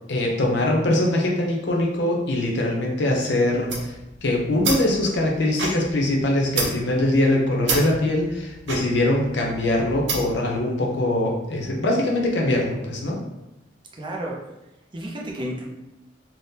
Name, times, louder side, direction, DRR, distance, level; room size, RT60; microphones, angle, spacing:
voice 1, 0.1-3.9 4.2-13.2, left 1 dB, 70° left, -1 dB, 0.6 m, -22 dB
sound 1, 3.5-10.5, right 3 dB, 80° right, 0.6 m, -31 dB
voice 2, 13.9-14.4 14.9-15.7, right 1 dB, 25° right, -2 dB, 0.5 m, -32 dB
3.5 x 2.0 x 2.7 m, 0.93 s
head